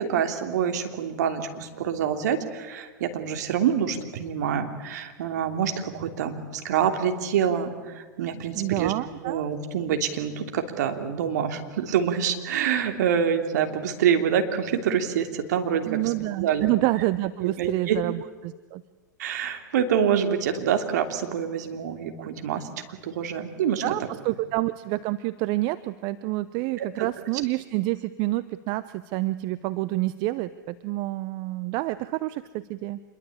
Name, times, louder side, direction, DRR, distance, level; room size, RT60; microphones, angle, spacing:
voice 1, 0.0-8.9 9.2-16.0 16.4-16.7 17.4-18.0 19.2-23.8 26.8-27.1, right 8 dB, 65° right, 5 dB, 3.1 m, -26 dB
voice 2, 8.5-9.4 15.9-18.8 23.8-33.0, right 18 dB, 45° right, 14 dB, 0.8 m, -28 dB
26.5 x 22.5 x 8.7 m, 1.3 s
hypercardioid pair, 100°, 10 cm